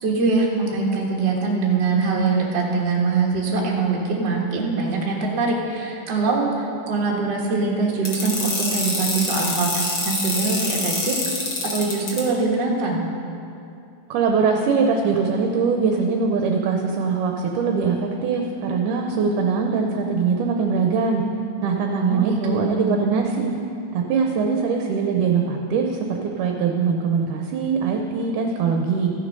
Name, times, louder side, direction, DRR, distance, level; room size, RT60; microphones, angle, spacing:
voice 1, 0.0-11.2 11.6-13.0 21.9-22.8, right 4 dB, 50° right, -2 dB, 1.3 m, -23 dB
sound 1, 8.0-12.2, left 3 dB, 45° left, 1.7 m, -25 dB
voice 2, 14.1-21.2 21.6-23.5 23.9-29.1, right 5 dB, 75° right, 3 dB, 2.1 m, -22 dB
14.0 x 6.5 x 5.2 m, 2.6 s
omnidirectional pair, 3.9 m